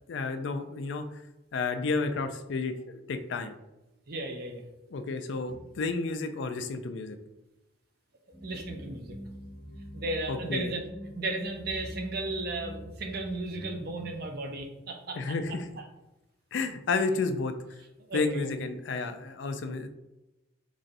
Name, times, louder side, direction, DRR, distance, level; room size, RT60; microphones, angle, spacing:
voice 1, 0.1-1.0 1.5-3.5 4.9-7.2 10.3-10.7 15.1-15.7 16.5-17.5 18.1-19.9, left 3 dB, 70° left, 8 dB, 0.4 m, -31 dB
voice 2, 4.1-4.6 8.4-9.2 9.9-10.9 11.1-15.4 18.1-18.5, right 2 dB, 55° right, 3 dB, 0.6 m, -35 dB
sound 1, 8.3-14.1, equal, 30° left, 1.0 m, -44 dB
4.0 x 3.1 x 2.5 m, 0.96 s
head